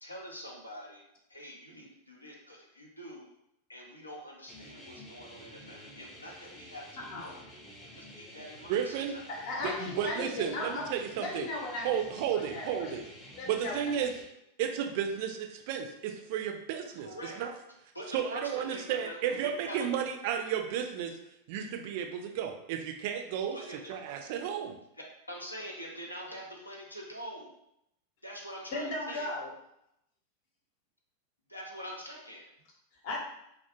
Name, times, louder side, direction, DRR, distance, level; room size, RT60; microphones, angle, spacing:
voice 1, 0.0-1.0 1.3-3.3 3.7-7.4 7.9-9.3 17.0-17.4 17.9-19.9 23.5-23.9 25.3-27.6 28.2-29.3 31.5-32.5, equal, 85° left, -2 dB, 0.5 m, -45 dB
sound 1, 4.5-14.3, left 1 dB, 10° left, 0.5 m, -50 dB
voice 2, 7.0-7.4 9.3-10.9 11.1-11.9 12.3-13.0 13.4-13.8 28.7-29.5 33.0-33.2, left 2 dB, 50° left, -2 dB, 0.7 m, -36 dB
voice 3, 8.7-9.1 9.8-11.5 11.8-13.0 13.5-14.1 14.6-17.1 17.4-17.5 18.1-21.1 21.5-23.6 23.9-24.8, right 8 dB, 50° right, 4 dB, 0.3 m, -33 dB
2.2 x 2.1 x 2.9 m, 0.79 s
figure-of-eight pair, 90°, 0 cm